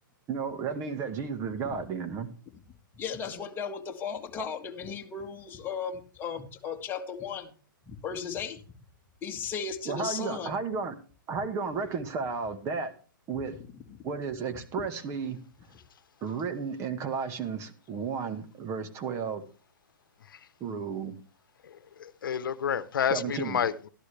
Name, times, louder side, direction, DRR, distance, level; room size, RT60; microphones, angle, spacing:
voice 1, 0.3-2.3 9.8-11.0 11.3-12.9 13.3-13.6 14.0-15.4 16.2-19.5 20.6-21.2 23.1-23.6, right 5 dB, 25° right, 1.6 m, -33 dB
voice 2, 2.9-7.5 7.8-8.6 9.2-10.6 13.9-14.0, left 6 dB, 20° left, 1.8 m, -36 dB
voice 3, 22.0-23.9, left 8 dB, 75° left, 1.0 m, -29 dB
13.5 x 12.0 x 3.4 m
hypercardioid pair, 140°, 11 cm